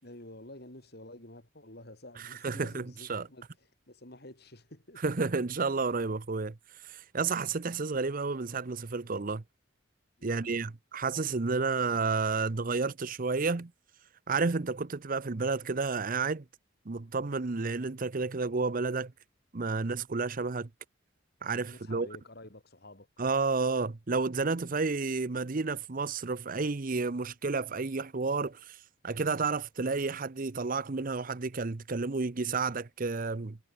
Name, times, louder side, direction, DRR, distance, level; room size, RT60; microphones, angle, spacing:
voice 1, 0.0-5.0 10.2-10.7 21.7-23.1, left 1 dB, 55° left, 6.2 m, -50 dB
voice 2, 2.4-3.3 5.0-6.6 6.8-9.4 10.2-13.7 14.3-16.4 16.9-19.1 19.5-20.7 21.4-22.1 23.2-28.8 29.0-33.6, right 4 dB, 45° right, 0.7 m, -31 dB
head